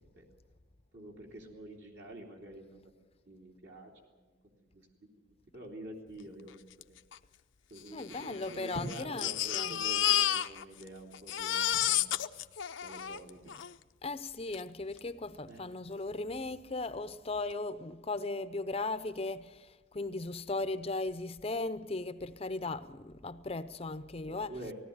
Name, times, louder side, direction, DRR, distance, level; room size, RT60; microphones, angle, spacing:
voice 1, 0.9-2.9 3.3-3.9 5.3-6.6 7.7-12.1 12.8-13.5 15.5-15.6 19.9-20.0 24.3-24.7, right 1 dB, 60° right, 3.1 m, -46 dB
Crying sobbing, 6.8-6.9 7.1-7.2 8.0-10.9 11.1-13.7 14.5-14.6 15.0-15.1, left 12 dB, 80° left, 0.7 m, -31 dB
voice 2, 7.9-9.3 9.5-9.8 14.0-24.6, left 3 dB, 30° left, 0.6 m, -37 dB
19.0 x 16.5 x 9.4 m
head